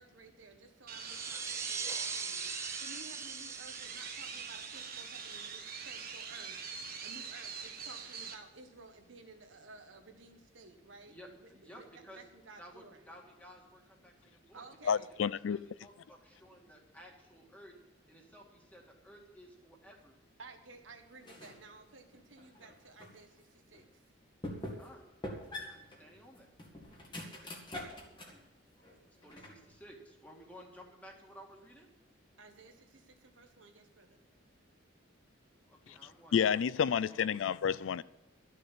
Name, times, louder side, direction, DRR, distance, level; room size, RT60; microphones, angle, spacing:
voice 1, 0.0-13.2 14.5-15.1 20.4-24.0 32.4-34.2 34.7-35.0, right 3 dB, 85° right, 1.5 m, -55 dB
sound 1, 0.9-8.3, right 6 dB, 50° right, 1.4 m, -44 dB
sound 2, 1.0-6.3, right 5 dB, 15° right, 0.5 m, -42 dB
voice 2, 11.1-12.2 12.6-15.0 15.4-17.7 18.1-20.2 24.7-25.1 25.7-26.5 29.1-31.9 35.7-36.4 36.9-37.4, equal, 10° left, 2.1 m, -55 dB
voice 3, 14.9-15.6 36.3-38.0, left 7 dB, 85° left, 0.4 m, -29 dB
sound 3, 21.2-21.7 22.1-23.2 23.7-23.8 24.4-25.0 25.2-28.4 28.8-29.7, left 1 dB, 25° left, 2.0 m, -45 dB
12.5 x 6.6 x 8.6 m
head